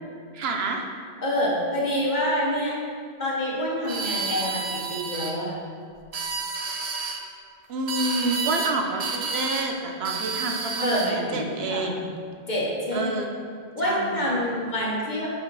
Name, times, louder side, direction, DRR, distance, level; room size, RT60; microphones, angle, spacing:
voice 1, 0.3-0.8 7.7-12.0 12.9-13.3 13.8-14.2, right 3 dB, 75° right, 2 dB, 1.0 m, -28 dB
voice 2, 1.2-2.7 3.2-5.7 10.8-11.9 12.5-13.1 13.7-15.3, equal, 45° left, -4 dB, 1.4 m, -27 dB
sound 1, 3.9-5.3 6.0-7.2 7.9-8.7 9.0-9.7 10.0-11.2, right 4 dB, 45° right, 0.6 m, -30 dB
6.3 x 5.0 x 4.8 m, 2.1 s
omnidirectional pair, 1.1 m